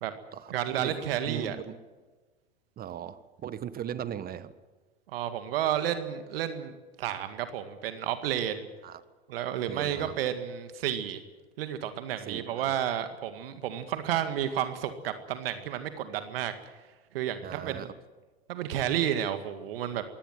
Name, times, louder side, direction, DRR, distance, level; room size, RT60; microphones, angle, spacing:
voice 1, 0.5-1.6 5.1-8.7 9.3-11.2 11.6-16.5 17.1-17.9 18.5-20.0, right 10 dB, 65° right, 9 dB, 2.1 m, -31 dB
voice 2, 1.2-1.7 2.8-4.5 8.8-9.0 9.7-10.2 12.3-12.8 17.4-17.9, right 10 dB, 30° right, 14 dB, 1.6 m, -38 dB
23.0 x 17.0 x 7.6 m, 1.3 s
hypercardioid pair, 100°, 31 cm